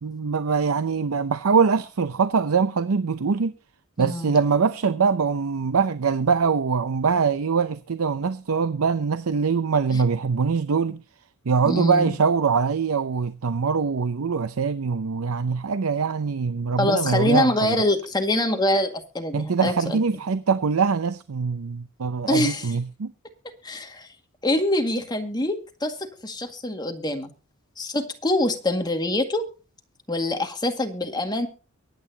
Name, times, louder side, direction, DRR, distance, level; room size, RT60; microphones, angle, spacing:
voice 1, 0.0-3.5 4.0-11.0 11.5-17.8 19.3-23.1, right 5 dB, 80° right, 0.6 m, -23 dB
voice 2, 4.0-4.3 9.9-10.0 11.7-12.2 16.8-20.0 22.3-22.7 23.6-24.1 24.4-26.0 26.2-27.3 27.8-29.4 30.1-31.5, left 1 dB, 20° left, 2.0 m, -24 dB
23.0 x 9.2 x 2.9 m
head